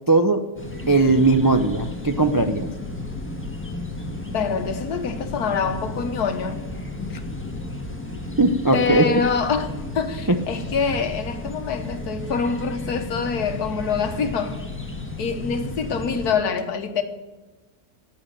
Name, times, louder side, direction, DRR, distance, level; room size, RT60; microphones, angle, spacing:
voice 1, 0.1-0.4 0.9-2.7 8.4-9.1 10.3-10.4, right 3 dB, 30° right, 0.3 m, -18 dB
sound 1, 0.6-16.3, left 2 dB, 10° left, 1.7 m, -33 dB
voice 2, 4.2-6.7 8.7-14.6 15.2-17.0, left 5 dB, 85° left, 1.8 m, -25 dB
16.5 x 7.2 x 9.0 m
omnidirectional pair, 1.6 m